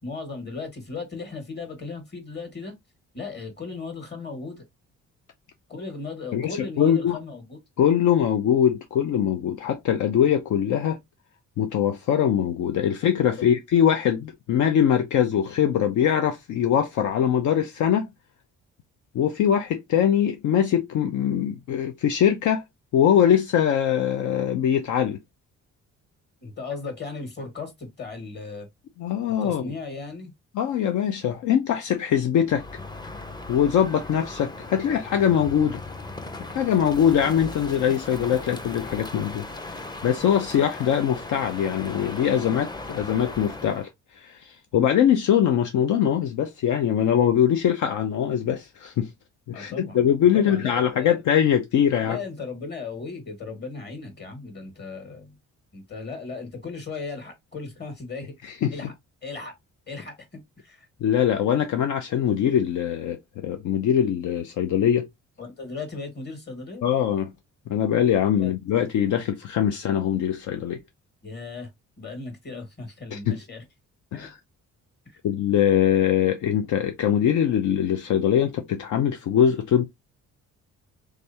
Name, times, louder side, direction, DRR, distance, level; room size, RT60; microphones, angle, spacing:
voice 1, 0.0-2.7 3.1-4.6 5.7-7.6 13.4-13.6 26.4-28.7 29.4-30.3 49.5-50.0 50.3-51.2 52.0-55.4 55.7-58.9 59.2-59.5 59.9-60.9 65.4-66.8 68.4-68.6 71.2-71.7 72.0-73.6 74.1-74.3 75.1-75.2, left 4 dB, 35° left, 2.0 m, -36 dB
voice 2, 6.3-7.2 7.8-11.0 11.6-18.1 19.1-22.6 22.9-25.2 29.0-29.7 30.5-32.6 33.5-35.8 36.5-43.9 44.2-49.1 49.5-52.2 58.4-58.7 61.0-65.1 66.8-67.3 67.7-70.8 73.1-73.4 74.1-74.4 75.2-79.9, left 9 dB, 75° left, 0.7 m, -22 dB
Crow, 32.5-43.9, left 2 dB, 15° left, 0.6 m, -38 dB
3.6 x 3.3 x 2.8 m
cardioid pair, 100°, 30 cm